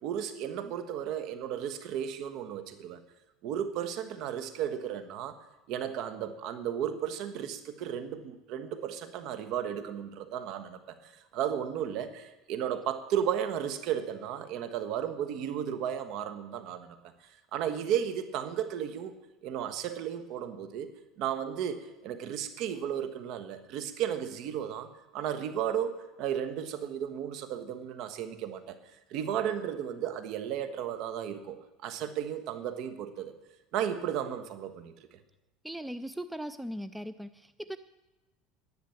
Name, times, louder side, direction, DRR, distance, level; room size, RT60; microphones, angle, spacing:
voice 1, 0.0-3.0 3.4-16.9 17.5-19.1 19.4-20.9 21.2-28.8 29.1-33.3 33.7-34.9, right 9 dB, 60° right, 9 dB, 1.4 m, -34 dB
voice 2, 35.6-37.8, equal, 5° right, 12 dB, 0.5 m, -39 dB
11.0 x 10.0 x 7.2 m, 1.1 s
supercardioid pair, 115°, 0 cm